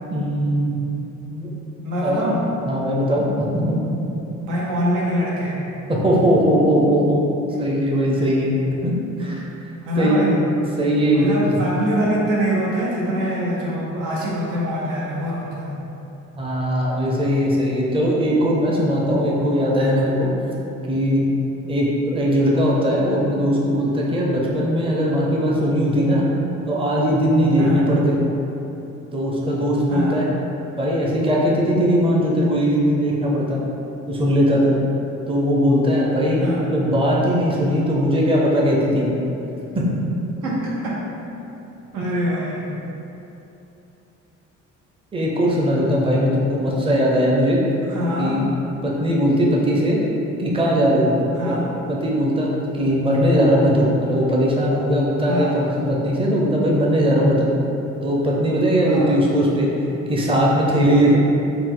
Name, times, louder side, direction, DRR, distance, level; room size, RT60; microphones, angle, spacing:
voice 1, 0.1-0.8 1.2-1.5 2.0-2.3 2.7-3.8 5.9-7.2 7.6-8.5 8.8-8.9 9.2-9.4 10.0-10.3 10.7-11.6 16.4-20.3 20.9-21.2 21.7-26.2 26.7-28.2 29.1-30.3 30.8-33.6 34.1-34.7 35.3-36.4 36.7-39.1 39.7-39.8 42.0-42.1 45.1-47.6 48.2-48.4 48.8-50.0 50.4-51.6 51.9-57.5 58.0-59.7 60.1-61.2, equal, 20° right, -3 dB, 0.6 m, -19 dB
voice 2, 1.8-2.5 4.4-5.6 9.8-10.4 11.1-15.8 27.6-27.9 29.9-30.2 36.4-36.7 40.4-41.0 41.9-42.7 47.9-48.4 51.3-51.7 55.3-55.6 58.9-59.2, equal, 85° right, -5 dB, 0.9 m, -24 dB
3.9 x 2.4 x 3.7 m, 2.9 s
cardioid pair, 90°, 30 cm